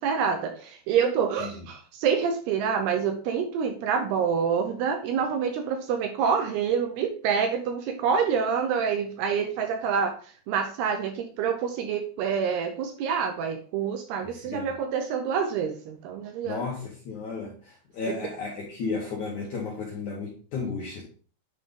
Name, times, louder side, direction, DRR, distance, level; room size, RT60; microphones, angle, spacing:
voice 1, 0.0-10.2 10.5-16.6 18.1-18.2, right 6 dB, 80° right, 5 dB, 2.4 m, -27 dB
voice 2, 16.4-21.0, left 4 dB, 70° left, -3 dB, 1.8 m, -33 dB
9.2 x 3.9 x 3.7 m, 0.41 s
omnidirectional pair, 5.1 m